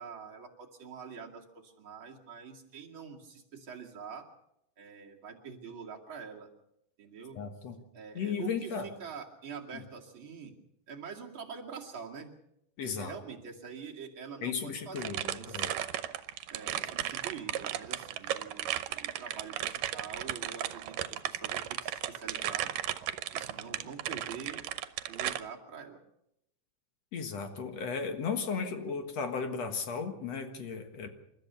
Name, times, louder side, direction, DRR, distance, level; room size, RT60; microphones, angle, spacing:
voice 1, 0.0-4.2 4.8-6.5 7.0-7.4 7.9-10.5 10.9-12.3 12.8-15.8 16.5-22.7 23.3-24.6 25.1-26.0, right 6 dB, 40° right, -1 dB, 2.9 m, -45 dB
voice 2, 7.4-7.8 8.2-8.9 12.8-13.1 14.4-15.7 27.1-31.1, left 5 dB, 55° left, 6 dB, 2.4 m, -35 dB
sound 1, 15.0-25.4, right 12 dB, 85° right, 2.5 m, -35 dB
28.5 x 13.5 x 6.9 m, 0.81 s
omnidirectional pair, 3.7 m